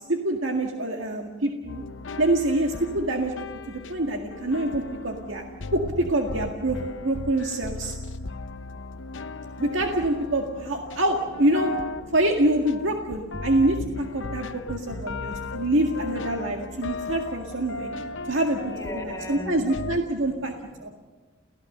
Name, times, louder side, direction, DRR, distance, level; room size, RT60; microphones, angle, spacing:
voice 1, 0.0-1.8 2.2-3.3 3.7-5.4 5.7-6.8 7.0-8.0 9.6-11.7 12.1-17.9 18.3-18.6 18.9-20.5 20.8-20.9, right 1 dB, 75° right, 2 dB, 1.9 m, -25 dB
sound 1, 1.7-20.0, left 3 dB, 70° left, 0.8 m, -37 dB
voice 2, 14.2-15.6 17.7-19.6 20.1-20.9, left 1 dB, 15° left, 4 dB, 4.1 m, -43 dB
29.5 x 16.0 x 6.7 m, 1.3 s
head